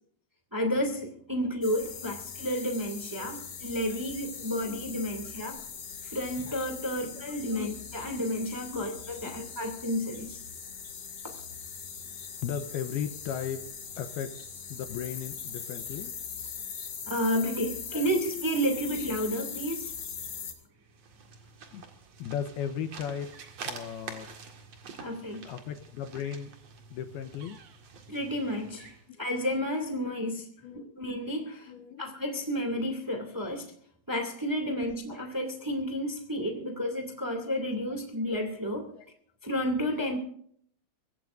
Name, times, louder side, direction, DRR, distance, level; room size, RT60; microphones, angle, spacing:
voice 1, 0.5-5.6 6.1-8.9 9.2-10.4 17.1-19.9 25.0-25.4 28.1-28.9 29.2-30.4 30.7-31.7 32.0-33.7 34.1-38.9 39.4-40.2, equal, 20° right, 3 dB, 0.5 m, -31 dB
sound 1, 1.6-20.5, left 6 dB, 45° left, 2.3 m, -41 dB
voice 2, 4.3-4.8 7.0-7.2 7.5-7.7 8.7-8.9 9.2-9.4 12.4-13.6 14.0-14.4 14.7-16.1 17.9-18.1 21.7-21.8 22.2-23.3 23.6-24.3 25.5-26.5 26.9-27.6 29.1-29.2 30.6-30.9 31.7-32.0 33.3-33.4 34.7-34.9 36.6-36.7 38.9-39.1, left 8 dB, 80° left, 8 dB, 2.3 m, -36 dB
sound 2, 20.8-29.1, right 5 dB, 50° right, 2.0 m, -47 dB
24.0 x 17.0 x 2.6 m, 0.62 s
omnidirectional pair, 5.5 m